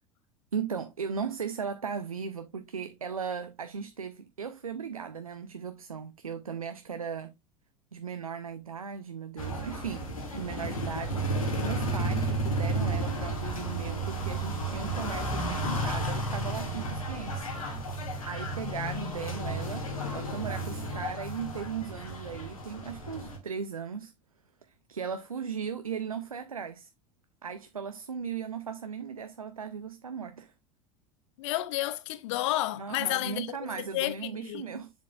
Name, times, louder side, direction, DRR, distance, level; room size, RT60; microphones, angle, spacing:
voice 1, 0.5-7.3 7.9-10.1 10.3-17.5 18.2-24.1 24.7-26.9 27.4-30.5 32.8-34.9, right 6 dB, 85° right, 0.6 m, -37 dB
sound 1, 9.4-23.4, right 1 dB, 80° left, 2.3 m, -32 dB
voice 2, 31.4-34.6, left 15 dB, 60° left, 0.6 m, -31 dB
7.5 x 7.2 x 2.4 m
figure-of-eight pair, 75°, 18 cm